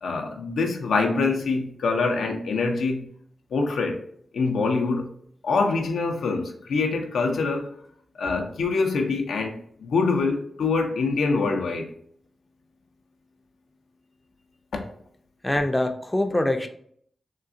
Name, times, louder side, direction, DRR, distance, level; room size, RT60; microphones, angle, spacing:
voice 1, 0.0-3.1 3.5-4.0 4.3-5.1 5.4-7.8 8.2-11.9 14.7-14.9, left 4 dB, 85° left, 3 dB, 0.5 m, -25 dB
voice 2, 15.4-16.7, left 1 dB, 15° left, 5 dB, 0.5 m, -24 dB
3.7 x 2.3 x 2.5 m, 0.63 s
cardioid pair, 50°, 0 cm